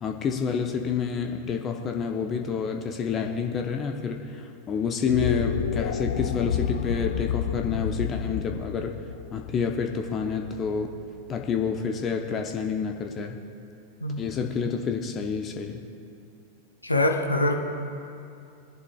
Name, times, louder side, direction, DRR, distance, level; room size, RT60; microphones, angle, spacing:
voice 1, 0.0-8.9 9.3-10.9 11.3-13.4 14.2-15.8, left 6 dB, 25° left, 3 dB, 0.8 m, -28 dB
sound 1, 5.0-11.3, left 8 dB, 65° left, 0.5 m, -30 dB
voice 2, 16.8-17.6, left 1 dB, 85° left, 2 dB, 1.1 m, -24 dB
22.5 x 11.0 x 2.4 m, 2.5 s
figure-of-eight pair, 90°, 0 cm